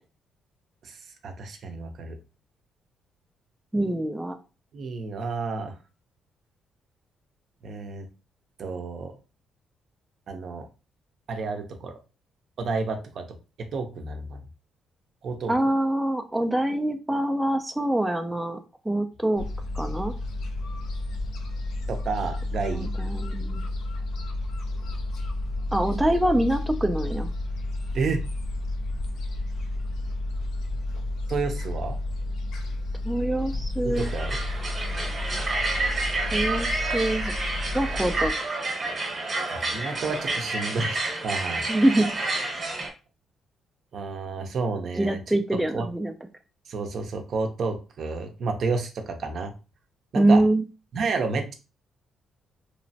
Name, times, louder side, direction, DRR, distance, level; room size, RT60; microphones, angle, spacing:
voice 1, 1.2-2.1 4.7-5.7 7.6-8.0 8.6-9.1 10.3-10.7 11.3-12.0 12.6-13.3 13.7-14.4 15.2-15.5 21.9-22.9 27.9-28.2 31.3-32.0 33.8-34.4 39.6-41.6 43.9-45.2 45.7-45.9 46.7-49.5 50.1-50.4 50.9-51.5, right 4 dB, 60° right, 5 dB, 0.6 m, -30 dB
voice 2, 3.7-4.4 15.5-18.6 18.8-19.5 19.7-20.1 22.7-23.7 25.7-27.3 33.0-34.1 36.3-37.3 37.7-38.3 41.7-42.1 42.3-42.5 45.0-46.1 50.1-50.6, right 1 dB, 5° right, 6 dB, 0.4 m, -24 dB
Gull seagull, 19.4-38.3, left 2 dB, 75° left, 0.5 m, -31 dB
sound 1, 33.9-42.9, right 2 dB, 35° right, 0.9 m, -29 dB
3.0 x 2.1 x 2.7 m, 0.31 s
cardioid pair, 90°, 0 cm